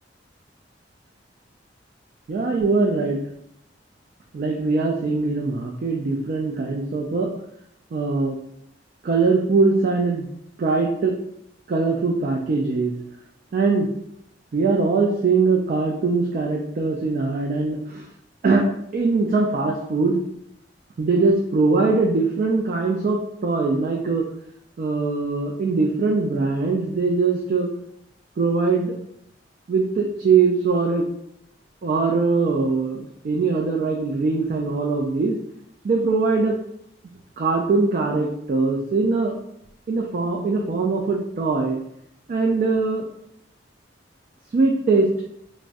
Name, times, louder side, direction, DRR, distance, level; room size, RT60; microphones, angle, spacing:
voice 1, 2.3-3.2 4.3-7.3 7.9-8.4 9.0-10.3 10.6-11.2 11.7-12.9 13.5-13.9 14.5-18.1 18.4-20.2 21.0-24.3 24.8-27.7 28.4-29.0 29.7-31.1 31.8-35.4 35.8-36.6 37.4-39.4 39.9-41.8 42.3-43.1 44.5-45.1, right 4 dB, 50° right, 0 dB, 0.3 m, -21 dB
3.4 x 2.0 x 2.5 m, 0.74 s
head